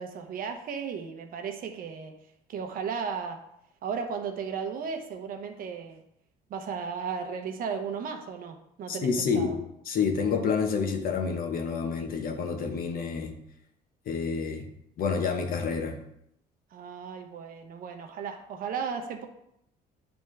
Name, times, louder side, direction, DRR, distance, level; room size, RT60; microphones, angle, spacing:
voice 1, 0.0-2.1 2.5-3.4 3.8-6.0 6.5-9.6 16.7-19.3, right 6 dB, 55° right, 5 dB, 0.9 m, -35 dB
voice 2, 8.9-9.5 9.9-13.3 14.1-14.6 15.0-15.9, left 5 dB, 60° left, 4 dB, 1.1 m, -28 dB
9.1 x 3.5 x 3.3 m, 0.77 s
cardioid pair, 110°, 17 cm